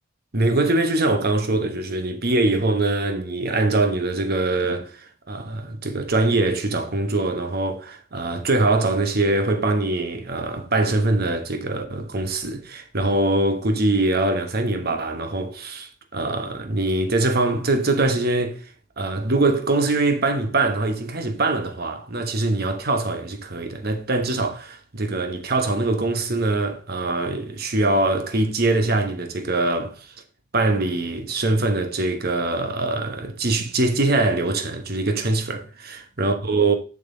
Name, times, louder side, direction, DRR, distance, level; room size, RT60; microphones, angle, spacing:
voice 1, 0.3-18.6 19.0-30.1 30.5-36.7, right 2 dB, 50° right, 1.2 m, -23 dB
7.2 x 6.4 x 3.8 m
head